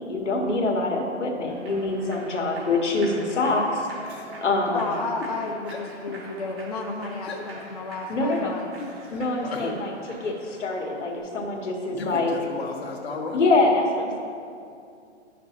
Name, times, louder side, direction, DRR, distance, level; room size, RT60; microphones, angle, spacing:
voice 1, 0.0-3.9 4.4-4.8 8.1-8.5 9.1-12.3 13.3-14.2, left 2 dB, 75° left, 0 dB, 1.6 m, -25 dB
Human voice / Clapping / Cheering, 1.5-11.2, right 2 dB, 50° right, 1.5 m, -44 dB
voice 2, 4.1-4.4 7.3-7.4 8.8-9.7 11.9-13.4, left 3 dB, 55° left, -1 dB, 1.5 m, -35 dB
voice 3, 4.7-8.7, left 3 dB, 35° left, 0 dB, 0.4 m, -32 dB
11.0 x 5.9 x 3.0 m, 2.4 s
hypercardioid pair, 150°, 37 cm